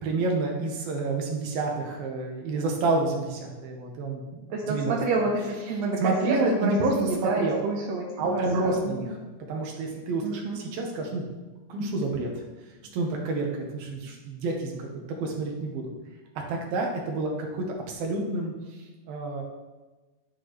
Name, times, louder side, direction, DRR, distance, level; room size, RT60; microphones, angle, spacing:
voice 1, 0.0-4.2 4.7-5.0 6.0-7.6 8.2-9.2 9.5-11.3 11.7-12.4 12.9-14.9 15.2-15.9 16.5-18.8 19.1-19.4, right 2 dB, 85° right, 1 dB, 3.1 m, -28 dB
voice 2, 4.5-8.9 10.2-10.6, right 3 dB, 70° right, -1 dB, 1.7 m, -29 dB
10.5 x 8.4 x 3.2 m, 1.2 s
omnidirectional pair, 4.1 m